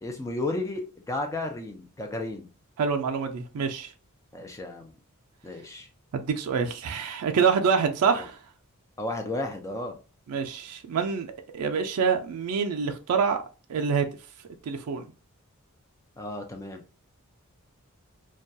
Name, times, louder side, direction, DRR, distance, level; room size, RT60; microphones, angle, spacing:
voice 1, 0.0-2.5 4.3-4.9 5.4-5.9 8.2-8.3 9.0-9.9 16.2-16.8, left 2 dB, 15° left, 0.3 m, -33 dB
voice 2, 2.8-3.9 6.1-8.3 10.3-11.3 11.5-13.4 13.7-14.1 14.7-15.1, right 6 dB, 80° right, 0.4 m, -26 dB
2.3 x 2.2 x 2.6 m
head